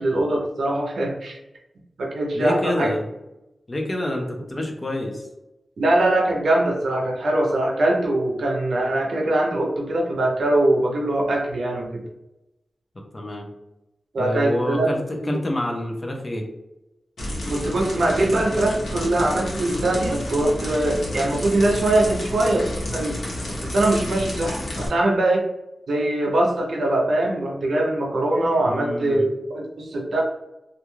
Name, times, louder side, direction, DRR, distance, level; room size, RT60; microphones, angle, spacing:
voice 1, 0.0-1.4 2.0-2.9 5.8-12.0 14.1-14.9 15.2-15.4 17.5-23.2 23.6-25.5 25.9-30.2, right 1 dB, 85° right, -1 dB, 0.6 m, -22 dB
voice 2, 2.3-3.0 3.7-5.3 13.1-13.5 14.2-16.4 28.6-29.3, left 1 dB, 25° left, 1 dB, 0.5 m, -27 dB
sound 1, 17.2-24.9, left 1 dB, 80° left, 0.8 m, -30 dB
2.4 x 2.2 x 3.0 m, 0.94 s
wide cardioid pair, 150°, 0 cm